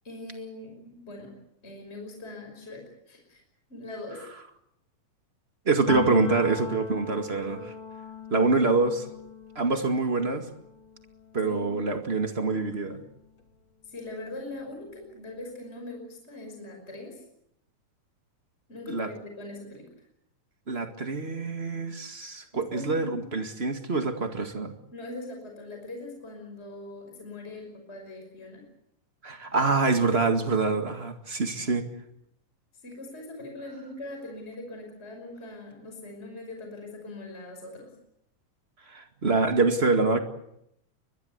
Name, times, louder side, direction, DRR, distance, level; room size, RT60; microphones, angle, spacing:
voice 1, 0.0-3.4 3.7-4.3 11.4-11.7 13.8-17.2 18.7-20.1 22.5-23.4 24.9-28.7 32.8-37.9, left 2 dB, 15° left, 2 dB, 5.8 m, -41 dB
voice 2, 5.6-7.7 8.3-9.1 9.5-10.5 11.3-13.0 18.9-19.1 20.7-24.7 29.2-31.9 38.9-40.2, right 3 dB, 25° right, 6 dB, 1.3 m, -25 dB
Piano, 5.9-13.5 13.8-15.4, left 5 dB, 35° left, 3.7 m, -40 dB
23.5 x 21.5 x 8.1 m, 0.76 s
omnidirectional pair, 4.2 m